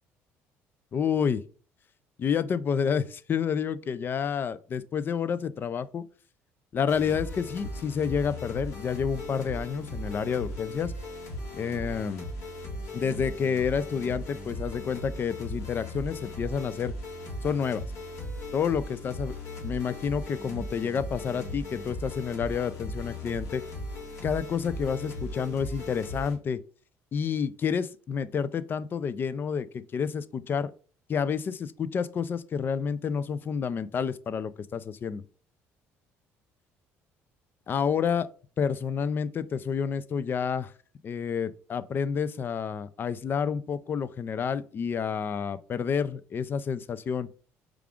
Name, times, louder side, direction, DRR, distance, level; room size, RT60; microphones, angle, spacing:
voice 1, 0.9-1.4 2.2-6.0 6.7-10.9 11.5-12.3 12.9-16.9 17.4-17.8 18.5-19.3 19.6-23.6 24.2-26.6 27.1-30.7 31.1-35.2 37.7-38.3 38.6-40.7 41.0-47.3, left 6 dB, 40° left, 0.3 m, -29 dB
sound 1, 6.9-26.4, left 1 dB, 60° left, 1.6 m, -38 dB
4.7 x 2.4 x 3.5 m
cardioid pair, 95°, 6 cm